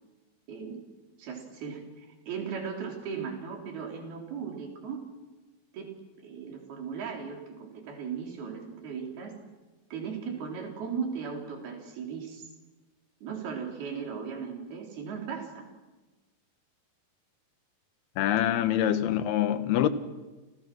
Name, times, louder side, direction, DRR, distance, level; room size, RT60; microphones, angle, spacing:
voice 1, 0.5-0.8 1.2-5.0 5.7-5.9 6.2-9.4 9.9-12.5 13.2-15.7 18.4-18.6, right 6 dB, 75° right, 5.8 m, -37 dB
voice 2, 18.2-19.9, left 11 dB, 85° left, 3.3 m, -25 dB
29.5 x 29.0 x 6.3 m
omnidirectional pair, 4.5 m